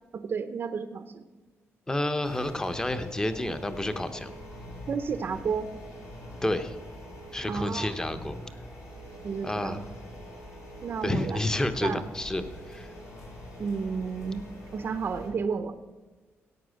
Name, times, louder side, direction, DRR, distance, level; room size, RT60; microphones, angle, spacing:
voice 1, 0.1-1.3 4.9-5.7 7.5-7.9 9.2-9.8 10.8-11.4 11.8-12.0 13.6-14.5 14.7-15.8, right 5 dB, 45° right, 10 dB, 0.6 m, -31 dB
voice 2, 1.9-4.3 6.4-6.7 7.3-8.4 9.4-9.8 11.0-12.9, left 1 dB, 15° left, 10 dB, 0.9 m, -30 dB
sound 1, 2.2-15.3, equal, 90° left, 4.5 m, -44 dB
15.0 x 8.9 x 6.4 m, 1.3 s
wide cardioid pair, 145°, 5 cm